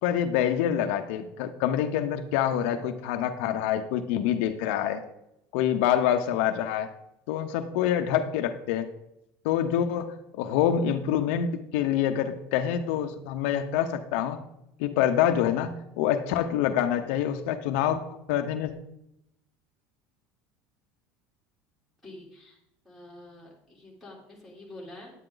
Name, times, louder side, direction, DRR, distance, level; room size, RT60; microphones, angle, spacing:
voice 1, 0.0-5.0 5.5-6.9 7.3-8.9 9.4-14.4 14.8-18.0 18.3-18.7, left 10 dB, 75° left, 7 dB, 0.8 m, -26 dB
voice 2, 22.0-22.6 22.8-25.1, left 1 dB, ahead, -4 dB, 3.3 m, -47 dB
9.9 x 9.1 x 3.9 m, 0.82 s
cardioid pair, 150°, 7 cm